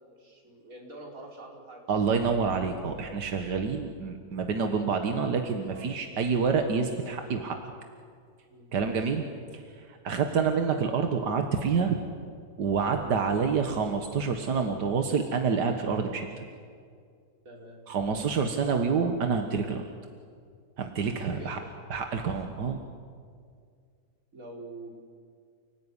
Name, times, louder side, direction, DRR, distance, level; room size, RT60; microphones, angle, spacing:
voice 1, 0.0-2.0 5.7-5.9 8.5-9.1 10.1-10.3 17.5-17.8 21.2-21.6 24.3-24.9, right 2 dB, 55° right, -1 dB, 5.3 m, -46 dB
voice 2, 1.9-7.6 8.7-9.2 9.9-12.0 12.6-16.5 17.9-19.9 20.8-21.6 21.9-22.8, right 5 dB, 90° right, 5 dB, 2.0 m, -27 dB
29.5 x 19.0 x 9.9 m, 2.2 s
omnidirectional pair, 1.8 m